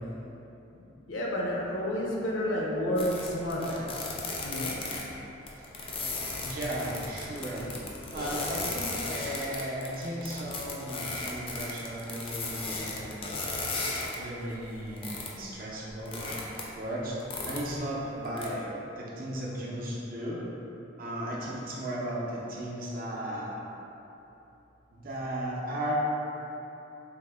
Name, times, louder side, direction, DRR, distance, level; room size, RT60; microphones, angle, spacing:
voice 1, 0.8-3.9 4.4-4.8, equal, 85° left, -3 dB, 0.5 m, -30 dB
sound 1, 3.0-5.0 5.4-14.2 14.5-15.4 15.7-16.8 17.2-17.9 18.2-18.5, left 3 dB, 30° left, 0.4 m, -35 dB
voice 2, 6.4-7.7 8.1-13.2 14.2-16.3 16.8-17.2 17.4-18.7 19.0-20.4 21.0-23.5 24.9-26.0, right 1 dB, 50° right, -4 dB, 0.5 m, -35 dB
3.4 x 2.1 x 3.4 m, 3.0 s
head